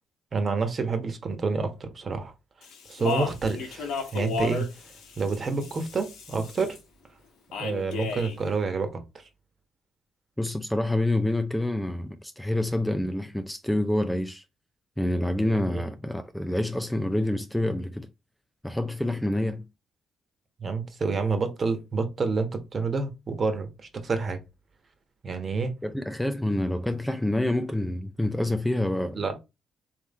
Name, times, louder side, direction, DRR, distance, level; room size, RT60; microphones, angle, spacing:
voice 1, 0.3-2.3 2.9-4.7 5.2-6.8 7.6-9.0 15.4-15.9 20.6-24.4 25.2-25.7 29.1-29.4, right 4 dB, 40° right, 1.2 m, -28 dB
Speech, 2.6-6.8 7.5-8.4, left 5 dB, 90° left, 1.4 m, -34 dB
voice 2, 10.4-14.4 15.0-18.1 18.6-19.7 25.8-29.2, left 1 dB, 5° left, 0.4 m, -27 dB
3.5 x 3.1 x 4.2 m
cardioid pair, 90°, 0 cm